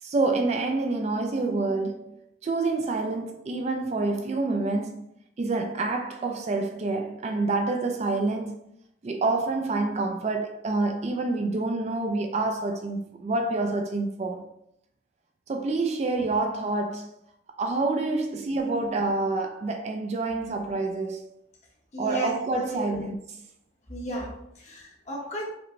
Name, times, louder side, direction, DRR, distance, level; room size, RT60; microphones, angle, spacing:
voice 1, 0.0-5.1 5.4-8.6 9.0-14.5 15.5-17.1 17.6-21.2 22.0-23.1, right 3 dB, 35° right, 0.3 m, -27 dB
voice 2, 21.9-23.0 23.9-25.5, equal, 40° left, 1.0 m, -34 dB
5.0 x 2.1 x 3.0 m
head